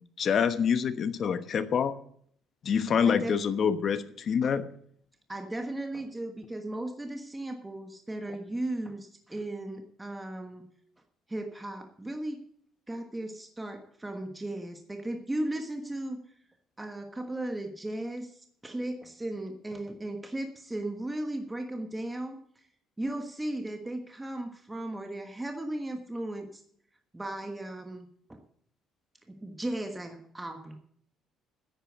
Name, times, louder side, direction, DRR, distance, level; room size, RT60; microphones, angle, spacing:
voice 1, 0.2-2.0 2.6-4.6, left 7 dB, 45° left, 11 dB, 1.1 m, -26 dB
voice 2, 3.0-3.4 5.3-10.7 11.3-12.4 12.9-16.2 16.8-22.6 23.0-26.6 27.1-28.4 29.3-30.8, right 1 dB, 10° right, 4 dB, 1.3 m, -36 dB
10.0 x 8.9 x 8.0 m, 0.64 s
cardioid pair, 120°, 0 cm